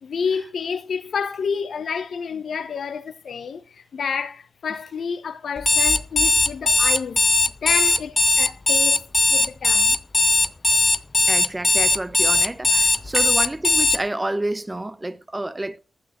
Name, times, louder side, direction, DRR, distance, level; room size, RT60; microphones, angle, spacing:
voice 1, 0.0-7.2 7.6-10.0 13.2-13.3, left 6 dB, 75° left, 0.7 m, -29 dB
Alarm, 5.6-14.0, left 3 dB, 35° left, 0.5 m, -18 dB
voice 2, 11.3-15.8, right 1 dB, 25° right, 0.8 m, -29 dB
10.5 x 9.7 x 3.0 m
supercardioid pair, 45°, 0 cm